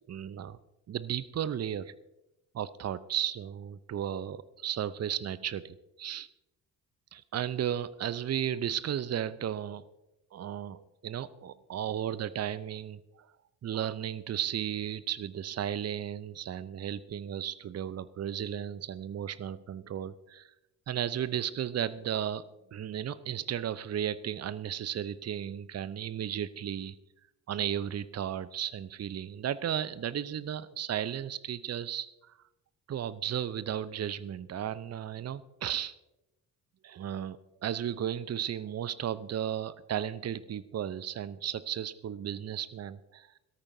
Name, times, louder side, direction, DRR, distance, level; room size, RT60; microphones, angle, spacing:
voice 1, 0.1-0.6 0.9-1.9 2.5-6.3 7.1-9.8 10.3-13.0 13.6-20.5 20.9-22.4 22.7-27.0 27.5-32.3 32.9-35.9 36.8-43.4, right 10 dB, 30° right, 17 dB, 0.7 m, -34 dB
21.5 x 13.5 x 2.7 m, 0.94 s
figure-of-eight pair, 45°, 49 cm